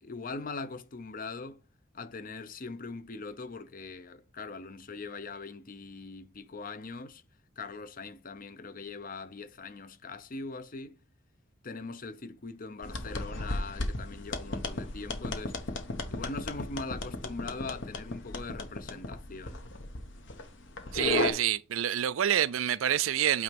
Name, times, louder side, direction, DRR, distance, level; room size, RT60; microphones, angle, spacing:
voice 1, 0.0-1.6 1.9-7.2 7.6-11.0 11.6-15.6 16.1-19.6, left 3 dB, 45° left, 0.7 m, -41 dB
sound 1, 12.8-21.3, left 2 dB, 65° left, 1.1 m, -35 dB
voice 2, 20.9-23.4, right 10 dB, 85° right, 0.4 m, -27 dB
8.5 x 3.1 x 5.2 m
head